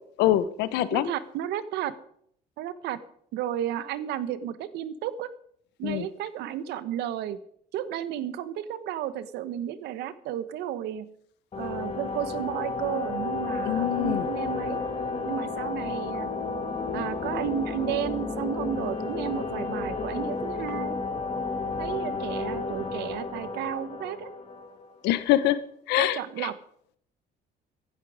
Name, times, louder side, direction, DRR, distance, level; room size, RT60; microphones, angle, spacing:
voice 1, 0.2-1.1 5.8-6.0 13.6-14.3 25.0-25.6 25.9-26.5, left 13 dB, 90° left, 15 dB, 1.1 m, -24 dB
voice 2, 0.9-1.9 2.6-3.0 3.3-5.3 5.8-7.4 7.7-11.1 11.6-14.8 15.2-16.3 16.9-21.0 21.8-24.3 26.0-26.5, right 10 dB, 80° right, 14 dB, 1.2 m, -33 dB
sound 1, 11.5-25.1, left 4 dB, 35° left, 2.9 m, -32 dB
15.5 x 11.5 x 5.0 m, 0.66 s
cardioid pair, 110°, 17 cm